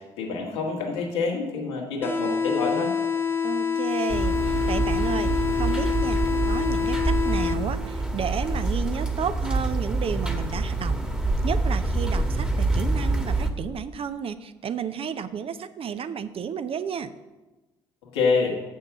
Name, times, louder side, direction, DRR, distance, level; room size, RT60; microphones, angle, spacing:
voice 1, 0.0-3.0 18.1-18.6, left 4 dB, 85° left, -1 dB, 1.6 m, -26 dB
sound 1, 2.0-8.0, left 6 dB, 15° left, 1.3 m, -26 dB
voice 2, 3.4-6.2 6.4-11.0 11.4-17.1, right 7 dB, 45° right, 12 dB, 0.6 m, -32 dB
sound 2, 4.1-13.5, right 2 dB, 5° right, 1.3 m, -26 dB
6.7 x 6.3 x 7.0 m, 1.1 s
hypercardioid pair, 50°, 13 cm